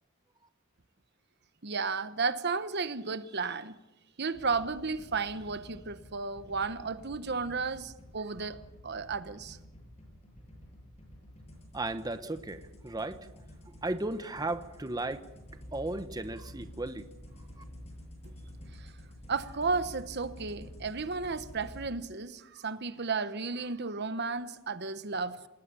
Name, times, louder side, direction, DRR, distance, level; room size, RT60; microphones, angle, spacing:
voice 1, 1.6-3.7 4.2-8.6 8.8-9.6 18.8-18.9 19.3-25.5, right 4 dB, 55° right, 1.1 m, -33 dB
sound 1, 4.3-21.9, equal, 35° left, 7.8 m, -50 dB
voice 2, 11.7-13.3 13.7-15.3 15.5-17.1 17.6-17.7, right 2 dB, 20° right, 1.0 m, -35 dB
28.0 x 19.5 x 7.0 m
head